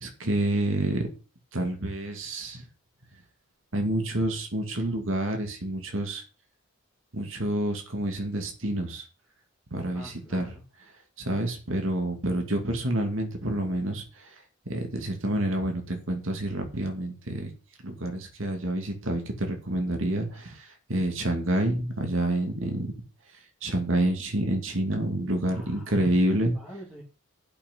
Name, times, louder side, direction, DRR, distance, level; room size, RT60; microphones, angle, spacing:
voice 1, 0.0-1.1 1.5-2.6 3.7-6.2 7.1-9.0 9.7-10.5 11.2-14.0 14.7-17.5 17.8-20.6 20.9-22.9 23.6-26.5, right 1 dB, 70° right, 4 dB, 2.4 m, -28 dB
voice 2, 9.9-10.6 21.5-21.7 25.5-26.2 26.5-27.0, equal, ahead, -7 dB, 2.7 m, -46 dB
8.5 x 6.2 x 8.0 m, 0.35 s
head